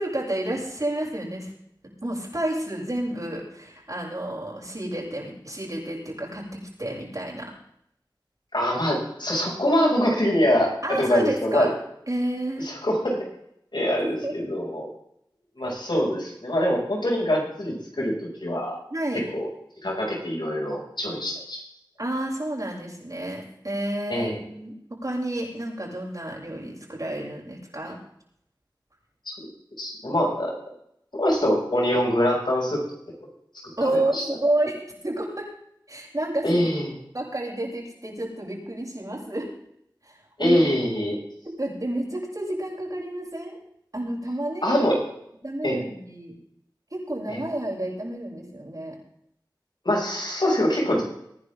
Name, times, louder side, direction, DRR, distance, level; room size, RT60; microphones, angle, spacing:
voice 1, 0.0-1.5 2.0-7.5 10.8-11.7 12.1-12.7 14.0-14.3 18.9-19.2 22.0-24.7 25.0-28.0 33.8-35.5 35.9-36.9 37.1-39.5 40.0-40.6 41.5-43.6 43.9-44.8 45.4-46.3 46.9-49.0, right 1 dB, 45° right, -3 dB, 6.9 m, -30 dB
voice 2, 8.5-11.7 12.6-13.3 13.7-14.9 15.6-18.8 19.1-19.5 19.8-21.6 24.1-24.4 29.8-30.5 31.1-32.8 33.9-34.2 36.4-36.9 40.4-41.2 44.6-45.0 45.6-45.8 47.3-47.4 49.8-51.0, equal, 70° left, -2 dB, 6.3 m, -24 dB
23.0 x 10.5 x 3.7 m, 0.74 s
wide cardioid pair, 40°, 8 cm